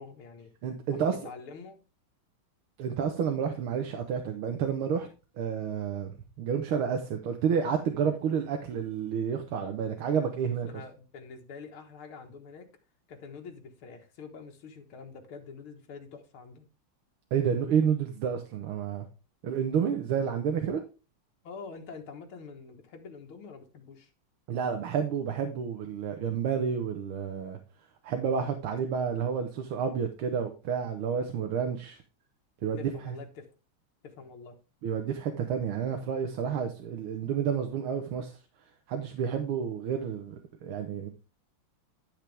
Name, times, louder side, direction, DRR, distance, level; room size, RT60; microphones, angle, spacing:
voice 1, 0.0-0.5 0.9-1.8 10.7-12.7 13.1-16.6 21.4-24.1 32.8-33.5 34.0-34.6, left 5 dB, 90° left, 2.3 m, -46 dB
voice 2, 0.6-1.2 2.8-5.1 5.4-10.7 17.3-19.1 19.4-20.8 24.5-27.6 28.0-32.0 32.6-33.1 34.8-38.4 38.9-41.1, right 7 dB, 85° right, 1.8 m, -30 dB
11.0 x 6.6 x 3.4 m
omnidirectional pair, 2.3 m